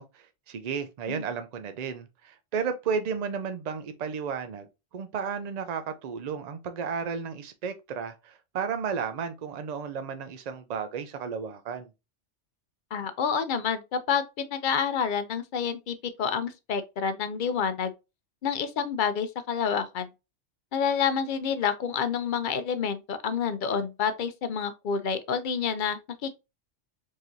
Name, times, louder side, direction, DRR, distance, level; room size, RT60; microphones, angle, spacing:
voice 1, 0.0-4.7 4.9-11.9, right 6 dB, 70° right, 0.4 m, -33 dB
voice 2, 12.9-17.9 18.4-20.1 20.7-26.3, left 6 dB, 60° left, 0.5 m, -28 dB
4.7 x 2.8 x 2.5 m
omnidirectional pair, 1.2 m